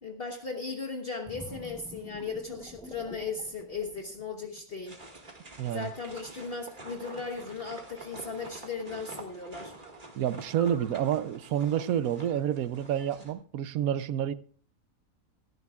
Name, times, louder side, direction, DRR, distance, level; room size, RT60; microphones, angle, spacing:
voice 1, 0.0-5.0 5.7-9.7, left 4 dB, 40° left, 1.3 m, -37 dB
sound 1, 1.2-4.8 5.3-5.5, equal, 5° left, 0.6 m, -48 dB
sound 2, 4.9-13.3, right 2 dB, 35° right, 2.0 m, -47 dB
voice 2, 5.6-5.9 10.2-14.3, right 10 dB, 75° right, 1.1 m, -29 dB
16.5 x 14.0 x 2.4 m
omnidirectional pair, 1.6 m